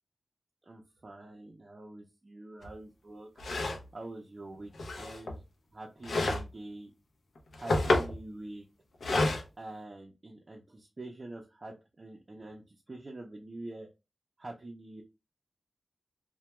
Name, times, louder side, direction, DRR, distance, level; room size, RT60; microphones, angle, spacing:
voice 1, 0.6-3.3 3.9-4.7 5.0-5.4 5.7-6.9 7.5-8.6 9.6-13.9 14.4-15.0, right 2 dB, 40° right, -1 dB, 0.5 m, -45 dB
sound 1, 2.6-2.7 3.4-3.9 4.7-5.4 6.0-6.5 7.4-8.2 9.0-9.4, left 2 dB, 80° left, 0.5 m, -29 dB
2.2 x 2.1 x 2.9 m, 0.26 s
wide cardioid pair, 70°, 0 cm